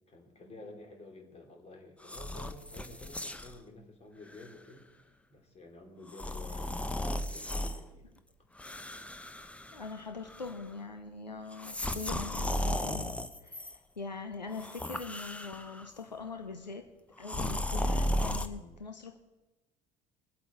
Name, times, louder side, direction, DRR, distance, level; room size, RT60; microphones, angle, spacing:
voice 1, 0.1-4.9 5.3-8.1 18.5-18.8, left 2 dB, 30° left, 3 dB, 2.7 m, -51 dB
sound 1, 2.0-3.6 4.3-4.5 6.1-7.8 8.6-10.0 10.3-10.7 11.5-13.8 14.5-15.9 17.2-18.5, left 1 dB, 5° left, 0.8 m, -35 dB
voice 2, 9.7-13.2 13.4-13.7 14.0-16.9 17.2-19.2, left 4 dB, 90° left, 6 dB, 0.7 m, -42 dB
21.5 x 8.2 x 4.3 m, 1.1 s
figure-of-eight pair, 65°, 21 cm